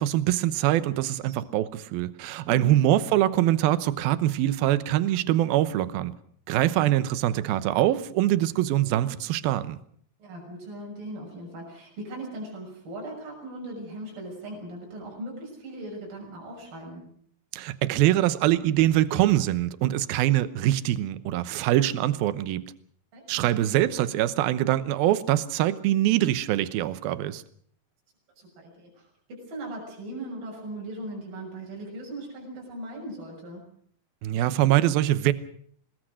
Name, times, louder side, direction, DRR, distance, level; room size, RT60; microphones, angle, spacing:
voice 1, 0.0-6.1 6.5-9.8 17.5-22.6 23.3-27.4 34.2-35.3, right 13 dB, 70° right, 14 dB, 2.5 m, -23 dB
voice 2, 10.2-17.1 23.1-23.2 28.4-33.6, right 1 dB, 55° right, -2 dB, 8.1 m, -39 dB
25.5 x 20.5 x 6.4 m, 0.62 s
omnidirectional pair, 5.0 m